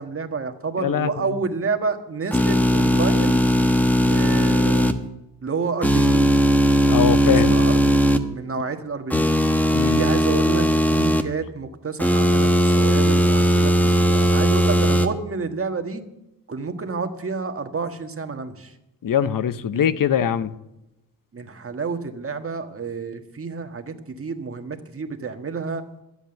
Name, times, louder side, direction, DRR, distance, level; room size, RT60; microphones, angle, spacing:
voice 1, 0.0-3.4 4.1-5.0 5.4-6.3 7.2-9.3 9.9-16.0 16.5-18.7 19.7-20.1 21.3-25.8, right 4 dB, 40° right, 6 dB, 1.5 m, -29 dB
voice 2, 0.8-1.1 6.9-7.6 9.7-10.0 19.0-20.5, left 8 dB, 65° left, 14 dB, 0.8 m, -22 dB
sound 1, 2.3-4.9 5.8-8.2 9.1-11.2 12.0-15.1, equal, 5° left, 1.1 m, -18 dB
12.5 x 8.0 x 7.9 m, 0.91 s
cardioid pair, 80°, 36 cm